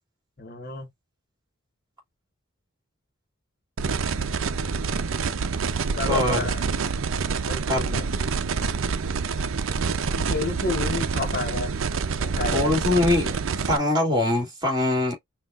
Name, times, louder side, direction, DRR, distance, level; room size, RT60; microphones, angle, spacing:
voice 1, 0.4-0.9 5.9-6.6 7.5-8.1 10.2-11.7 12.2-12.9, left 3 dB, 45° left, 1.0 m, -31 dB
sound 1, 3.8-13.8, right 5 dB, 80° right, 0.6 m, -27 dB
voice 2, 6.1-6.4 7.7-7.8 12.5-13.4 13.7-15.1, left 2 dB, 20° right, 2.4 m, -22 dB
5.8 x 2.5 x 2.4 m
head